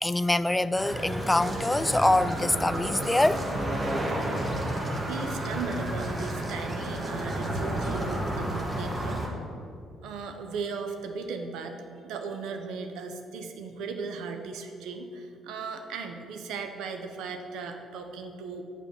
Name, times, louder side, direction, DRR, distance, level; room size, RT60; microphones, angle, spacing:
voice 1, 0.0-3.4, left 1 dB, 15° left, 14 dB, 0.3 m, -24 dB
sound 1, 0.8-9.3, right 1 dB, 30° right, 1.4 m, -31 dB
voice 2, 4.7-9.4 10.0-11.8 12.0-18.6, right 4 dB, 75° right, 5 dB, 0.7 m, -37 dB
7.1 x 4.4 x 6.8 m, 2.5 s
hypercardioid pair, 50°, 0 cm